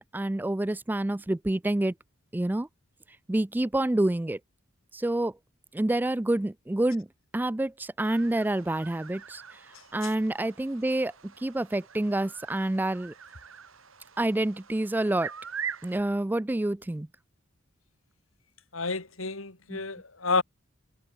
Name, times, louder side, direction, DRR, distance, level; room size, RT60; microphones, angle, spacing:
voice 1, 0.0-1.9 2.3-2.7 3.3-4.4 4.9-5.3 5.7-7.1 7.3-9.4 9.9-11.1 11.4-13.1 14.2-15.3 15.8-17.1 19.7-19.8, right 1 dB, 10° right, 0.3 m, -27 dB
sound 1, 8.0-16.0, right 7 dB, 80° right, 4.5 m, -43 dB
voice 2, 18.7-20.4, left 4 dB, 80° left, 3.3 m, -30 dB
head